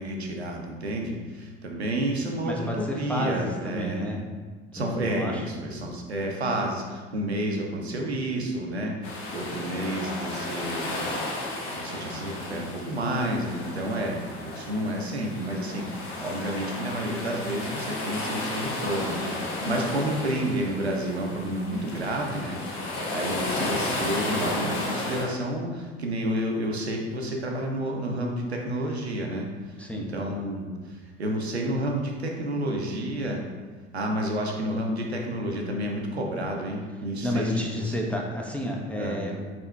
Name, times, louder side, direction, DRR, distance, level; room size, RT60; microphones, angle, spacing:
voice 1, 0.0-4.1 4.7-9.0 9.3-10.9 11.7-22.6 22.9-29.5 30.0-33.4 33.9-38.0 39.0-39.2, right 1 dB, 85° right, 1 dB, 0.5 m, -30 dB
voice 2, 2.4-4.2 4.8-5.4 29.8-30.1 37.2-39.5, left 1 dB, 5° left, -1 dB, 0.4 m, -31 dB
sound 1, 9.0-25.3, left 2 dB, 45° left, 0.8 m, -33 dB
4.2 x 3.6 x 2.2 m, 1.4 s
figure-of-eight pair, 65°, 31 cm